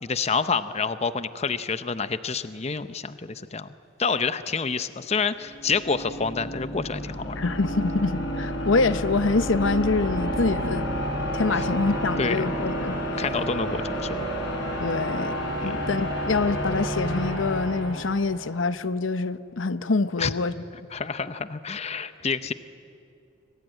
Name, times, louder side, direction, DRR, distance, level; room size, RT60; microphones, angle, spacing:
voice 1, 0.0-3.7 4.0-7.4 11.6-11.7 12.2-12.4 13.2-14.3 15.6-15.8 20.2-20.3 20.9-22.5, left 5 dB, 35° left, 0.7 m, -28 dB
sound 1, 5.4-18.5, equal, 60° left, 6.0 m, -30 dB
voice 2, 7.4-10.9 11.3-13.0 14.8-15.3 15.6-20.5, left 3 dB, 80° left, 0.8 m, -25 dB
26.0 x 23.5 x 9.1 m
head